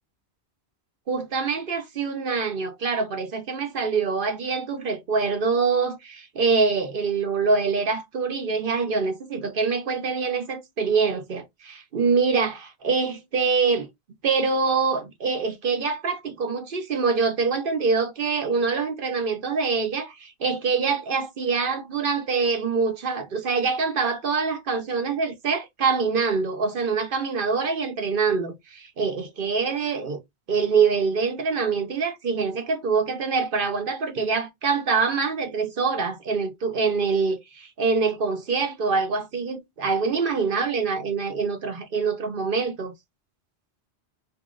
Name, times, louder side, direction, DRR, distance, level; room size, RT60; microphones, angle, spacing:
voice 1, 1.1-13.9 14.2-30.2 30.5-42.9, right 5 dB, 55° right, 0.9 m, -25 dB
3.0 x 2.7 x 3.8 m
omnidirectional pair, 1.1 m